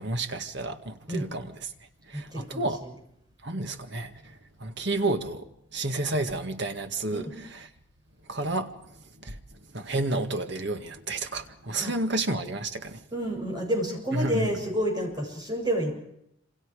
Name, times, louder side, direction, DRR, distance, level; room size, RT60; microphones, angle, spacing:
voice 1, 0.0-1.7 2.1-2.9 3.4-7.3 7.5-7.6 8.3-9.4 9.7-13.0 14.1-14.5, right 2 dB, 60° right, 2.0 m, -31 dB
voice 2, 2.1-3.0 7.1-7.3 11.8-11.9 13.1-15.9, equal, 20° right, 7.3 m, -30 dB
27.0 x 26.5 x 5.0 m
head